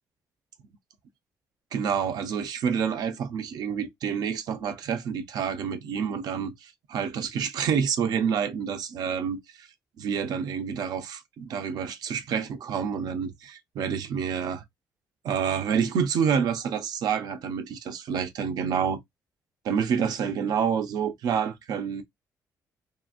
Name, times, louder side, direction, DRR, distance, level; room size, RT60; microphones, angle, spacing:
voice 1, 1.7-9.7 10.0-14.6 15.2-19.0 19.6-22.0, right 7 dB, 75° right, 0.6 m, -28 dB
2.8 x 2.5 x 2.3 m
cardioid pair, 105°, 7 cm